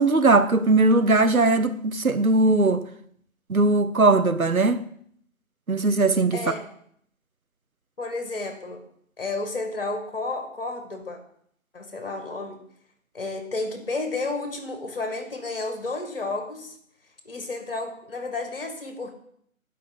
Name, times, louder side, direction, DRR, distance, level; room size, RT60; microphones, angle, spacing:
voice 1, 0.0-2.8 3.5-4.8 5.7-6.4, right 2 dB, 85° right, 1.0 m, -19 dB
voice 2, 6.3-6.7 8.0-8.8 9.2-11.2 11.7-12.6 13.1-16.8 17.2-19.1, left 3 dB, 40° left, 2.3 m, -31 dB
11.0 x 5.7 x 7.0 m
figure-of-eight pair, 155°, 41 cm